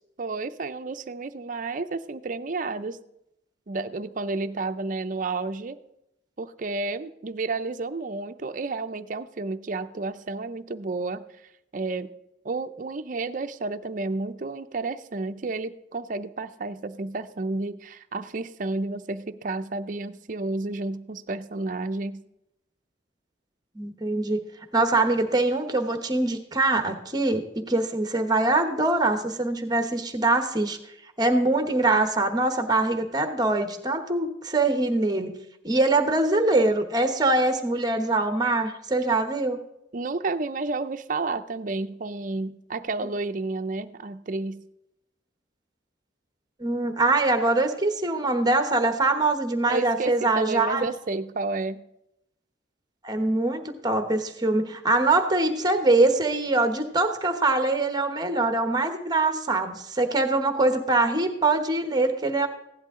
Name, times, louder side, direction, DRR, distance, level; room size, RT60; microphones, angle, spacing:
voice 1, 0.2-3.0 3.7-5.8 6.4-11.2 11.7-12.1 12.4-22.2 39.9-44.6 49.7-51.8, right 3 dB, 45° right, 9 dB, 0.6 m, -31 dB
voice 2, 23.7-24.4 24.7-30.8 31.2-35.4 35.6-39.6 46.6-50.9 53.0-62.5, right 2 dB, 20° right, 7 dB, 1.1 m, -23 dB
16.0 x 11.0 x 3.7 m, 0.84 s
head